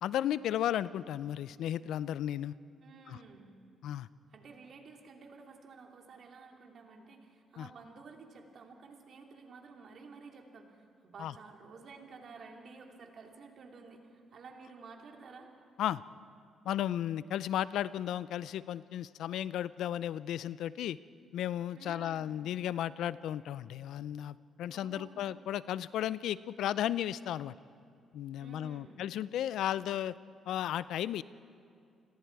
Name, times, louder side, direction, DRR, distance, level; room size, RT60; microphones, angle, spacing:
voice 1, 0.0-2.5 3.1-3.2 3.8-4.1 7.6-7.7 11.2-11.3 15.8-16.0 16.6-21.0 21.3-27.5 28.1-30.1 30.5-31.2, left 11 dB, 80° left, 18 dB, 0.4 m, -34 dB
voice 2, 2.8-3.5 4.3-15.5 21.8-22.4 24.7-25.3 28.4-29.0, right 4 dB, 60° right, 2 dB, 3.0 m, -52 dB
29.0 x 21.0 x 4.7 m, 2.4 s
cardioid pair, 70°, 0 cm